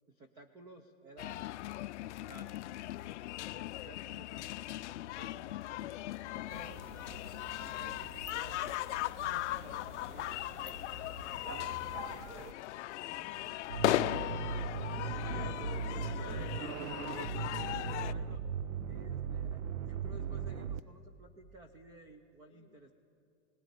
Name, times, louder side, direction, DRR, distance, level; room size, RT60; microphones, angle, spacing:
voice 1, 0.1-2.8 3.3-6.9 7.4-8.8 9.1-10.5 11.2-12.1 13.2-13.7 14.9-16.6 17.5-18.4 18.9-22.9, right 2 dB, 10° right, 6 dB, 0.5 m, -55 dB
sound 1, 1.2-18.1, left 15 dB, 60° left, 0.5 m, -38 dB
sound 2, 6.5-12.5, right 5 dB, 30° right, 0.9 m, -50 dB
voice 2, 13.0-14.5 15.2-16.9 17.2-17.5 22.5-22.9, left 6 dB, 15° left, 1 dB, 1.3 m, -55 dB
sound 3, 13.7-20.8, right 5 dB, 85° right, 0.9 m, -38 dB
19.5 x 17.5 x 9.5 m, 2.7 s
supercardioid pair, 155°, 40 cm